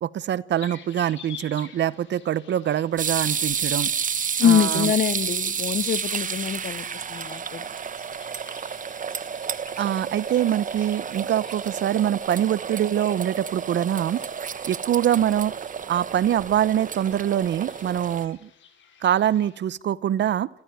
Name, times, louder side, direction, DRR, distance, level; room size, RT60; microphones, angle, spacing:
voice 1, 0.0-3.9 4.4-4.9 9.8-14.2 14.6-15.5 15.9-18.5 19.0-20.5, right 11 dB, 65° right, 1.0 m, -24 dB
sound 1, 0.5-19.6, left 8 dB, 70° left, 4.8 m, -50 dB
sound 2, 3.0-18.3, right 7 dB, 40° right, 1.2 m, -30 dB
voice 2, 4.4-7.7, left 8 dB, 50° left, 1.3 m, -24 dB
28.0 x 15.5 x 9.3 m
cardioid pair, 90°, 20 cm